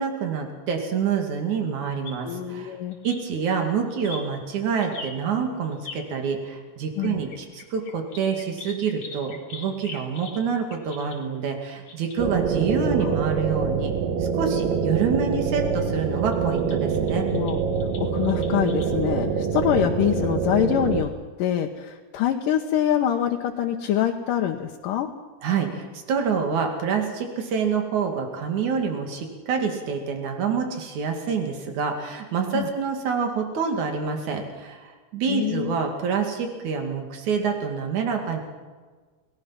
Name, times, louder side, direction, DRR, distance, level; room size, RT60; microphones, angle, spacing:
voice 1, 0.0-2.8 3.0-13.9 14.2-17.3 25.4-38.4, right 6 dB, 65° right, 3 dB, 3.8 m, -27 dB
sound 1, 2.0-6.1 6.8-13.0 13.3-13.4 13.9-14.0 15.3-15.4 16.1-18.8, left 4 dB, 50° left, 3.8 m, -43 dB
voice 2, 2.2-3.0 7.0-7.2 13.0-13.1 16.7-16.8 17.1-17.6 18.0-21.1 21.4-25.1 32.5-32.7 35.3-35.8, left 10 dB, 85° left, 1 dB, 2.7 m, -25 dB
sound 2, 12.2-21.0, right 6 dB, 90° right, 3.2 m, -25 dB
29.5 x 19.0 x 5.9 m, 1.4 s
omnidirectional pair, 3.7 m